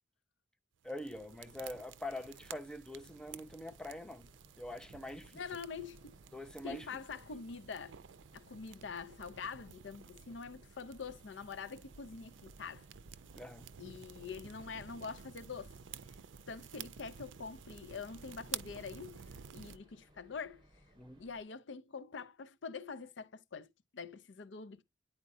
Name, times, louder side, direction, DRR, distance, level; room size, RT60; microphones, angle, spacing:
voice 1, 0.8-4.3 4.6-5.4 6.3-7.0 13.3-13.7 21.0-21.2, left 1 dB, 5° left, 0.6 m, -44 dB
sound 1, 0.8-19.8, right 8 dB, 85° right, 0.5 m, -52 dB
sound 2, 2.9-21.4, equal, 25° right, 1.7 m, -65 dB
voice 2, 5.3-6.1 6.6-8.0 8.3-12.9 13.8-15.7 16.5-19.2 19.5-20.6 21.2-24.8, left 5 dB, 70° left, 0.6 m, -45 dB
9.6 x 4.3 x 2.6 m
head